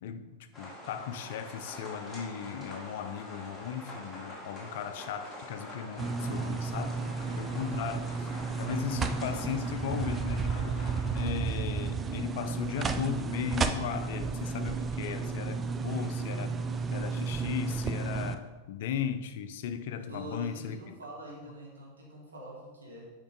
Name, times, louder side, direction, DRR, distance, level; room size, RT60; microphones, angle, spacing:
voice 1, 0.0-7.0 7.3-8.3 8.6-10.8 11.1-16.6 16.9-20.8, left 8 dB, 55° left, 10 dB, 0.5 m, -37 dB
sound 1, 0.5-11.3, left 1 dB, 5° left, 2.2 m, -45 dB
sound 2, 6.0-18.4, right 4 dB, 20° right, 0.5 m, -33 dB
voice 2, 20.0-23.1, equal, 70° right, -4 dB, 2.2 m, -44 dB
8.5 x 5.2 x 3.8 m, 1.2 s
figure-of-eight pair, 90°, 0 cm